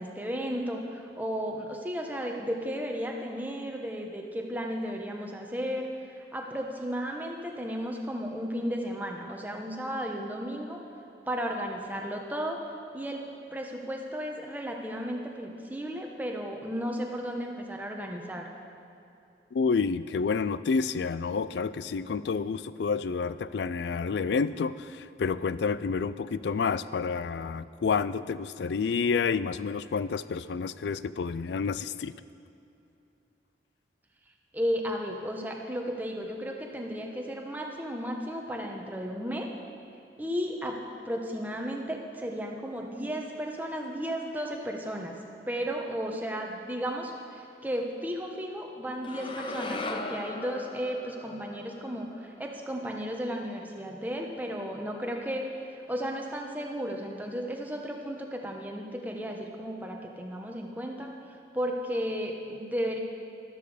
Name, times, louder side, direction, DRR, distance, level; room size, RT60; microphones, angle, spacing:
voice 1, 0.0-10.8 11.3-12.6 12.9-13.2 13.5-18.5 34.5-39.5 40.2-40.8 41.0-45.2 45.5-61.1 61.5-63.0, equal, 10° right, 1 dB, 1.1 m, -34 dB
voice 2, 19.5-32.1, left 5 dB, 80° left, 15 dB, 0.4 m, -29 dB
sound 1, 49.0-53.3, left 2 dB, 30° left, 0.6 m, -39 dB
12.5 x 12.5 x 5.0 m, 2.8 s
head